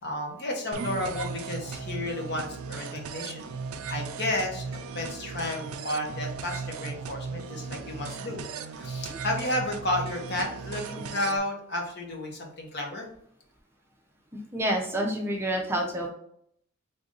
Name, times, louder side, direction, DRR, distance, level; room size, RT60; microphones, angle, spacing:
voice 1, 0.0-3.5 3.9-13.1, left 1 dB, 50° left, 1 dB, 1.0 m, -32 dB
sound 1, 0.7-11.4, right 5 dB, 70° right, 0.4 m, -37 dB
voice 2, 14.3-16.1, right 1 dB, 10° right, 0 dB, 0.5 m, -28 dB
3.8 x 2.6 x 3.7 m, 0.69 s
head